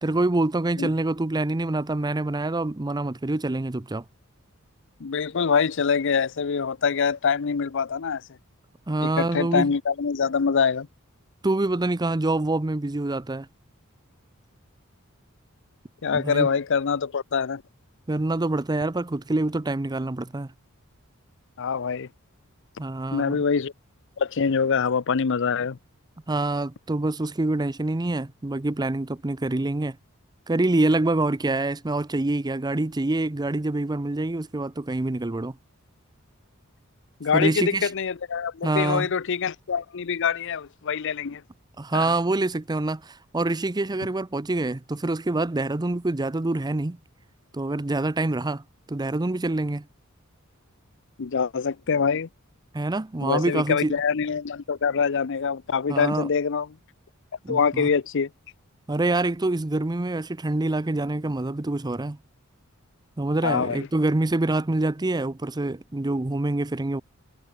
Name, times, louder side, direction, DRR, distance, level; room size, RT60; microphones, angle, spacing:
voice 1, 0.0-4.0 8.9-9.7 11.4-13.5 16.1-16.5 18.1-20.5 22.8-23.4 26.3-30.0 30.5-35.5 37.3-37.9 38.6-39.1 41.8-47.0 47.5-48.6 48.9-49.8 52.7-53.9 55.9-56.3 57.4-57.9 58.9-62.2 63.2-67.0, right 2 dB, 20° right, 0.6 m, -26 dB
voice 2, 5.0-8.2 9.0-10.9 16.0-17.6 21.6-22.1 23.1-23.7 24.2-25.8 37.2-41.4 41.9-42.1 51.2-52.3 53.2-56.7 57.5-58.3 63.4-63.9, left 6 dB, 60° left, 0.6 m, -24 dB
head